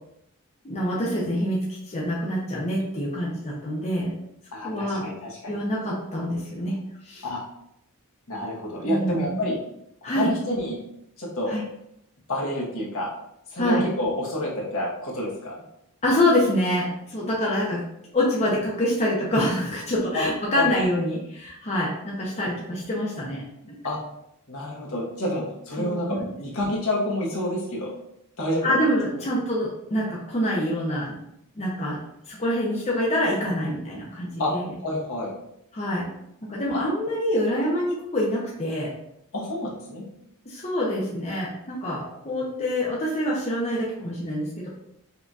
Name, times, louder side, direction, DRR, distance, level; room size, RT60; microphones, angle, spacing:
voice 1, 0.6-1.6 1.9-4.1 4.6-5.0 5.5-6.7 7.0-7.2 8.8-9.4 10.0-10.3 11.5-11.6 13.6-13.8 16.0-17.8 18.1-23.7 25.8-26.3 28.6-31.2 31.6-32.0 32.3-34.7 35.7-36.1 36.5-38.9 40.5-44.7, equal, 30° left, -5 dB, 0.7 m, -26 dB
voice 2, 4.5-5.6 7.2-7.4 8.3-9.6 10.0-10.8 11.2-11.6 12.3-13.1 13.5-15.6 20.1-20.2 20.5-20.7 23.8-24.0 24.5-27.9 28.4-28.7 34.4-34.5 34.8-35.3 39.3-40.0, left 1 dB, 65° left, -4 dB, 1.2 m, -28 dB
5.5 x 2.7 x 2.4 m, 0.77 s
head